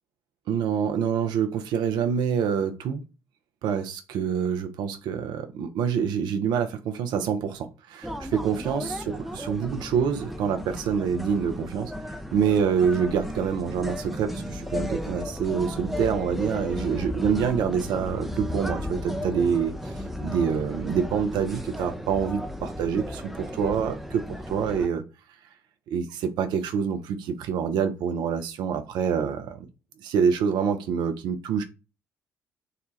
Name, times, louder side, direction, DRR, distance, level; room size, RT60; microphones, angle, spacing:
voice 1, 0.5-3.0 3.6-11.9 12.3-19.8 20.2-25.0 25.9-29.7 30.0-31.6, right 7 dB, 60° right, 0.5 m, -26 dB
sound 1, 8.0-24.9, left 1 dB, ahead, 0.5 m, -34 dB
3.7 x 2.2 x 3.1 m
figure-of-eight pair, 45°, 8 cm